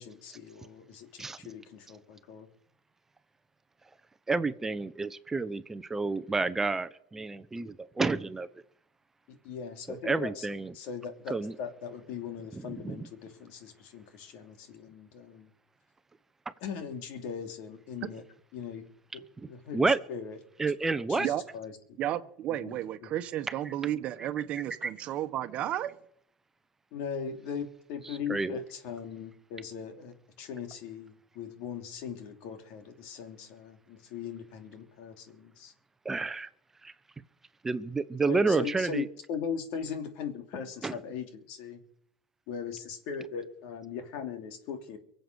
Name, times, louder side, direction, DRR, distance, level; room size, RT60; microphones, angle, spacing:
voice 1, 0.0-2.5 9.3-10.5 10.7-15.5 16.6-18.2 18.5-18.8 19.1-20.4 21.1-21.8 22.5-23.1 26.9-35.7 38.3-41.8 42.5-45.0, left 7 dB, 70° left, 2.9 m, -39 dB
voice 2, 4.3-8.5 9.9-10.7 11.3-11.5 12.5-13.1 19.7-20.0 20.6-21.3 23.5-23.7 24.8-24.9 28.1-28.6 36.0-36.5 36.8-36.9 37.6-39.1 40.8-40.9, right 3 dB, 15° right, 0.9 m, -30 dB
voice 3, 22.0-25.9, right 12 dB, 50° right, 1.2 m, -32 dB
23.5 x 7.9 x 6.4 m
supercardioid pair, 100°, 2 cm